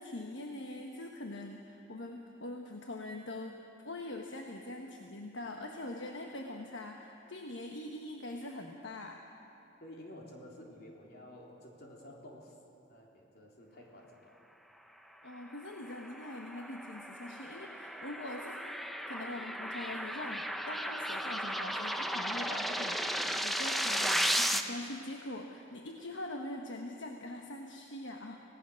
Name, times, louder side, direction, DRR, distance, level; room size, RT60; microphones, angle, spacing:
voice 1, 0.0-9.2 15.2-18.8 19.1-28.4, left 1 dB, 70° left, 2 dB, 1.2 m, -43 dB
voice 2, 9.8-12.5 12.9-14.4, left 1 dB, 50° left, -1 dB, 3.4 m, -51 dB
sound 1, 15.7-24.6, equal, ahead, 0.6 m, -35 dB
25.0 x 18.0 x 6.4 m, 3.0 s
head